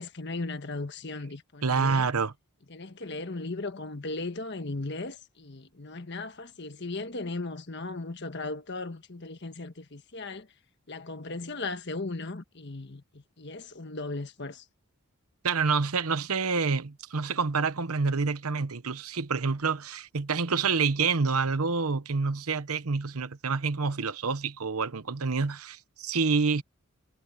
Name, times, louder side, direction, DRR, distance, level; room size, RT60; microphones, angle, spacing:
voice 1, 0.0-2.1 2.7-10.5 10.9-14.6, left 3 dB, 55° left, 1.5 m, -37 dB
voice 2, 1.6-2.3 15.4-26.6, right 4 dB, 85° right, 1.0 m, -27 dB
head